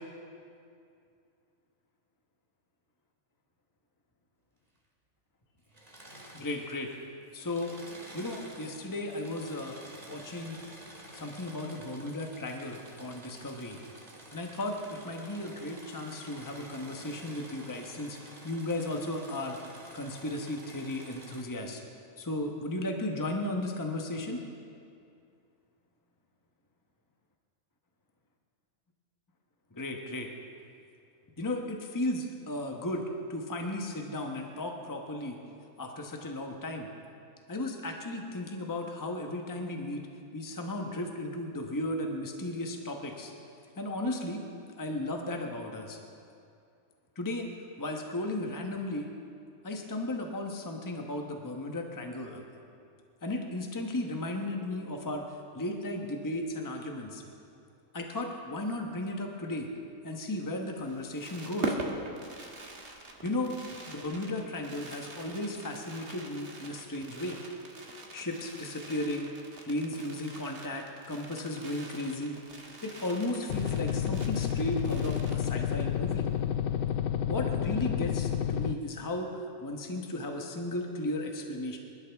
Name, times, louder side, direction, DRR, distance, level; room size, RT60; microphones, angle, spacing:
Engine / Mechanisms, 5.6-7.0 7.3-21.4, right 1 dB, 30° right, 2.1 m, -50 dB
voice 1, 6.3-6.9 7.3-7.7 8.1-9.8 10.0-10.6 11.1-13.8 14.3-18.2 18.4-19.6 19.9-21.8 22.2-24.4 29.7-30.3 31.4-33.0 33.3-35.4 35.8-36.9 37.5-40.0 40.3-43.3 43.8-44.4 44.8-46.0 47.2-47.5 47.8-49.1 49.6-52.4 53.2-55.2 55.5-57.2 57.9-59.7 60.0-61.8 63.2-63.5 63.9-67.4 68.1-69.3 69.6-72.4 72.8-76.3 77.3-81.8, left 1 dB, 15° left, 2 dB, 1.0 m, -35 dB
Fireworks, 60.8-76.0 76.3-76.4 76.5-76.8, right 3 dB, 45° right, 1.5 m, -43 dB
sound 1, 73.5-78.7, left 9 dB, 65° left, 0.6 m, -30 dB
25.5 x 12.0 x 3.5 m, 2.5 s
omnidirectional pair, 1.4 m